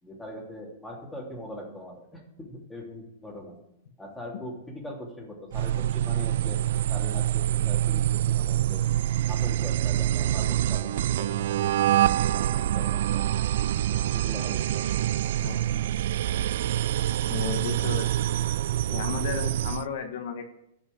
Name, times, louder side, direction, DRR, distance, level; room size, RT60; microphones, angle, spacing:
voice 1, 0.0-3.6 4.0-6.6 6.9-8.9 9.3-11.7 12.3-13.3 13.9-14.9, left 1 dB, 5° left, -2 dB, 3.0 m, -41 dB
sound 1, 5.5-19.9, right 12 dB, 65° right, 0.3 m, -26 dB
voice 2, 15.4-15.8 17.3-18.3 18.9-20.4, left 7 dB, 65° left, 5 dB, 1.5 m, -34 dB
12.5 x 6.2 x 8.5 m, 0.80 s
hypercardioid pair, 150°, 0 cm